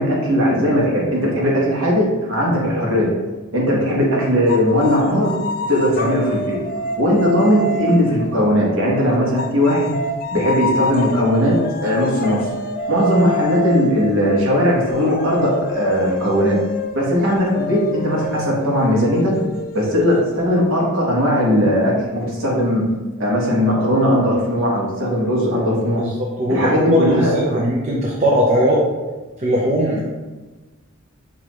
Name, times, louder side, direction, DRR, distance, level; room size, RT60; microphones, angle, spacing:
voice 1, 0.0-3.1 3.5-5.3 5.7-6.6 7.0-9.9 10.3-12.5 12.9-16.6 16.9-19.4 19.7-22.8 23.2-26.0 26.5-27.6 29.9-30.0, equal, 60° right, -3 dB, 1.2 m, -18 dB
sound 1, 4.5-8.8 9.4-20.7, left 1 dB, 40° left, 0.3 m, -28 dB
voice 2, 26.4-27.0 27.3-28.8 29.4-30.0, equal, 30° right, -3 dB, 0.6 m, -18 dB
6.3 x 2.8 x 3.0 m, 1.2 s
head